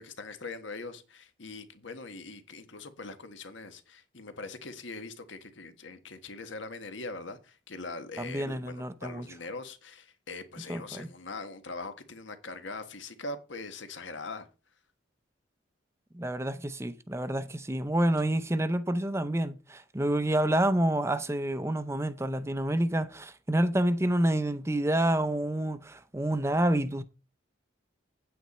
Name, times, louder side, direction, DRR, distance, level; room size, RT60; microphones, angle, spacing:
voice 1, 0.0-14.5, left 3 dB, 75° left, 1.5 m, -42 dB
voice 2, 8.2-9.3 10.7-11.1 16.1-27.0, right 1 dB, 15° right, 0.6 m, -28 dB
9.2 x 8.7 x 4.3 m
head